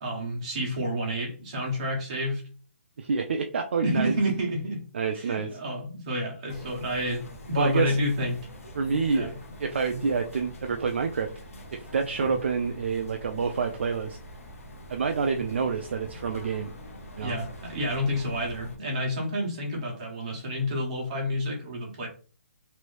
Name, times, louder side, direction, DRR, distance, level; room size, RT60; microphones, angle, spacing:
voice 1, 0.0-2.4 3.8-4.8 5.1-8.4 9.1-9.3 17.2-22.1, equal, 30° right, -1 dB, 1.0 m, -29 dB
voice 2, 3.0-4.2 4.9-5.6 7.5-8.0 8.8-9.3 9.6-11.3 11.7-14.2 14.9-16.7 17.2-17.4, right 5 dB, 50° right, 5 dB, 0.3 m, -27 dB
sound 1, 6.5-18.8, equal, 75° left, 1.0 m, -44 dB
3.0 x 2.6 x 3.1 m, 0.39 s
hypercardioid pair, 175°, 8 cm